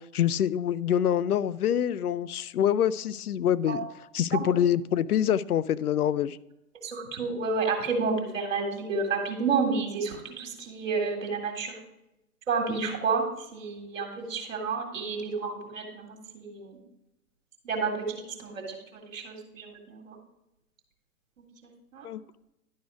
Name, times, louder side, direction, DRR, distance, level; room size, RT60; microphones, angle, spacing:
voice 1, 0.1-3.9 4.1-6.4 22.0-22.2, left 10 dB, 80° left, 18 dB, 0.5 m, -25 dB
voice 2, 6.8-11.7 12.5-13.2 13.5-16.8 17.7-20.2 21.9-22.1, right 4 dB, 60° right, 2 dB, 1.9 m, -30 dB
11.5 x 4.3 x 4.7 m, 0.88 s
hypercardioid pair, 140°, 44 cm